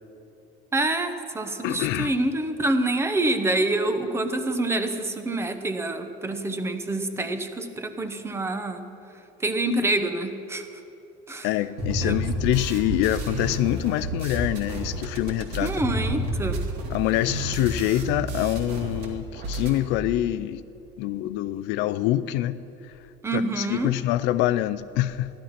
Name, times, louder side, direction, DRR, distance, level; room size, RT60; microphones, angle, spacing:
voice 1, 0.7-8.9 9.4-10.6 11.3-11.5 12.0-12.2 15.6-16.6 23.2-23.9, right 2 dB, 10° right, 0.8 m, -26 dB
voice 2, 1.6-2.2 11.4-15.8 16.9-20.6 21.0-22.6 23.3-25.3, left 14 dB, 60° left, 0.4 m, -25 dB
sound 1, 11.8-19.1 19.3-19.8, right 1 dB, 50° right, 2.2 m, -30 dB
14.5 x 11.5 x 5.8 m
cardioid pair, 160°, 21 cm